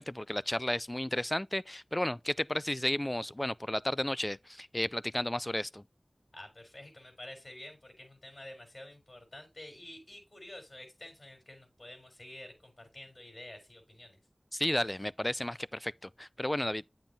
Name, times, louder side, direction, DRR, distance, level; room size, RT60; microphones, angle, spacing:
voice 1, 0.0-5.8 14.5-16.9, left 1 dB, 20° left, 0.3 m, -33 dB
voice 2, 6.3-14.2, left 1 dB, 50° left, 4.1 m, -49 dB
8.9 x 7.4 x 2.7 m
wide cardioid pair, 45°, 0 cm